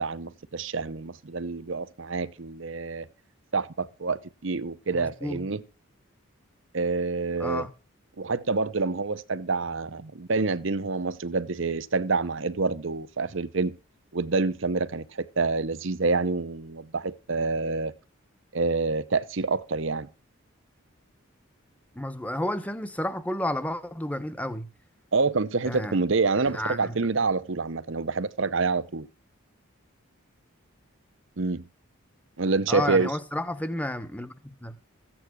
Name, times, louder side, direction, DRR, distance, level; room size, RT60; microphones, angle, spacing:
voice 1, 0.0-3.1 3.5-5.6 6.7-7.7 8.2-13.8 14.1-17.9 18.5-20.1 25.1-29.1 31.4-31.6 32.4-33.1, right 4 dB, 60° right, 0.8 m, -27 dB
voice 2, 4.9-5.4 7.4-7.7 21.9-24.7 25.6-26.0 26.5-26.9 32.7-34.7, left 1 dB, 5° left, 1.1 m, -31 dB
15.0 x 8.8 x 6.2 m
head